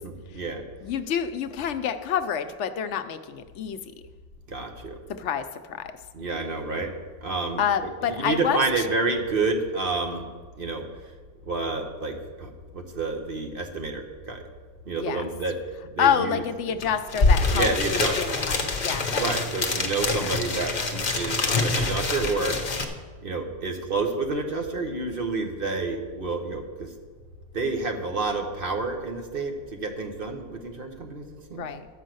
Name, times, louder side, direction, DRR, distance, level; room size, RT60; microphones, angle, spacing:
voice 1, 0.0-0.6 4.5-4.9 6.1-6.9 7.2-7.6 8.0-10.2 10.6-10.9 11.5-14.4 14.8-15.6 15.9-16.9 17.5-18.4 19.1-22.9 23.2-26.9 27.5-31.7, right 3 dB, 50° right, 3 dB, 1.2 m, -29 dB
voice 2, 0.8-3.9 5.1-5.9 7.6-8.9 14.9-15.3 16.0-19.2 20.1-20.2 31.5-31.9, left 8 dB, 75° left, 9 dB, 0.9 m, -28 dB
sound 1, 16.8-16.9 17.1-22.8, left 3 dB, 40° left, 0.9 m, -25 dB
11.5 x 5.4 x 7.7 m, 1.4 s
omnidirectional pair, 1.3 m